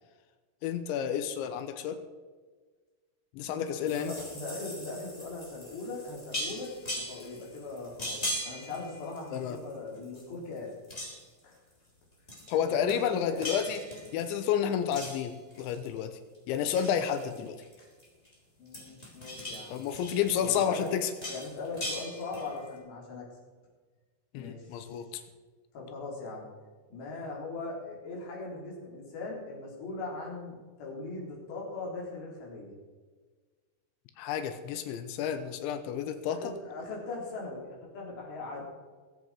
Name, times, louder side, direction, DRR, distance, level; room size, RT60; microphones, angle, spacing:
voice 1, 0.6-2.0 3.3-4.1 9.3-9.6 12.5-13.8 14.1-16.2 16.5-17.6 19.7-21.1 24.3-25.2 34.2-36.5, left 8 dB, 90° left, 9 dB, 3.3 m, -30 dB
voice 2, 3.4-6.7 7.0-10.7 11.4-11.6 12.5-13.4 18.6-19.8 20.4-20.9 21.3-23.3 24.3-25.0 25.7-26.5 26.9-32.7 36.3-38.6, left 3 dB, 70° left, -3 dB, 5.7 m, -40 dB
sound 1, 3.9-9.7 10.0-10.6 10.8-11.4 12.3-12.6 12.9-14.4 14.9-16.0 16.3-18.3 18.7-22.7, left 1 dB, 15° left, 3.2 m, -40 dB
22.5 x 8.1 x 4.8 m, 1.4 s
omnidirectional pair, 5.2 m